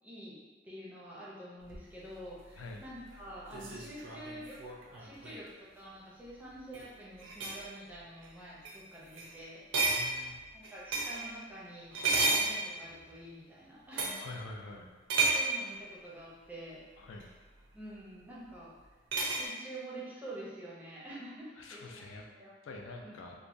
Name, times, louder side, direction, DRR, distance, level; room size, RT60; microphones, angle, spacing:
voice 1, 0.0-0.4 0.6-4.6 5.0-10.0 10.5-14.3 15.3-16.8 17.7-18.7 19.2-22.5 23.0-23.2, right 1 dB, 10° right, -7 dB, 0.5 m, -47 dB
sound 1, 1.7-5.5 6.6-6.9 7.2-7.6 8.2-8.4 8.6-8.8 9.1-9.3 9.7-11.3 11.9-13.1 13.9-14.3 15.1-15.6 17.2-17.3 19.1-19.5, right 3 dB, 75° right, 0.5 m, -32 dB
voice 2, 9.8-10.3 14.2-14.9 17.0-17.3 21.6-22.3 22.6-23.3, left 2 dB, 80° left, 2 dB, 0.4 m, -45 dB
3.1 x 2.1 x 2.5 m, 1.3 s
head